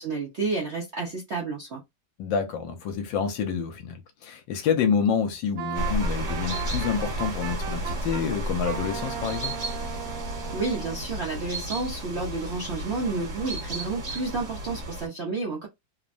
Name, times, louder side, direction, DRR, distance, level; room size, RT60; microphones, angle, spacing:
voice 1, 0.0-1.8 10.5-15.7, right 3 dB, 65° right, 0.6 m, -30 dB
voice 2, 2.2-9.6, left 6 dB, 75° left, 1.4 m, -28 dB
Wind instrument woodwind instrument, 5.6-8.2 8.6-11.0, right 10 dB, 90° right, 1.4 m, -36 dB
sound 1, 5.7-15.1, right 1 dB, 40° right, 1.2 m, -33 dB
3.3 x 2.1 x 2.4 m
omnidirectional pair, 2.1 m